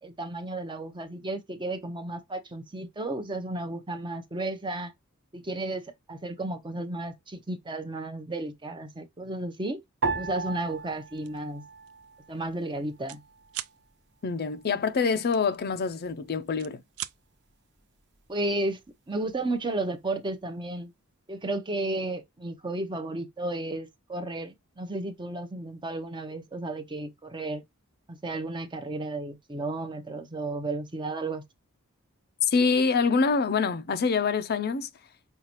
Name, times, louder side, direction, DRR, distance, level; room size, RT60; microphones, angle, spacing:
voice 1, 0.0-4.9 5.3-9.8 10.1-11.6 12.3-13.2 18.3-18.8 19.1-20.9 21.3-27.6 28.1-31.4, right 2 dB, 20° right, 0.7 m, -33 dB
sound 1, 10.0-12.5 12.8-13.7 14.3-14.7, right 4 dB, 55° right, 1.1 m, -35 dB
sound 2, 11.2-11.4 11.9-12.0 12.3-13.2 13.5-13.8 15.3-16.1 16.5-17.2, right 13 dB, 70° right, 0.4 m, -39 dB
voice 2, 14.2-16.8 32.5-34.9, left 5 dB, 45° left, 0.5 m, -25 dB
5.6 x 2.3 x 2.9 m
head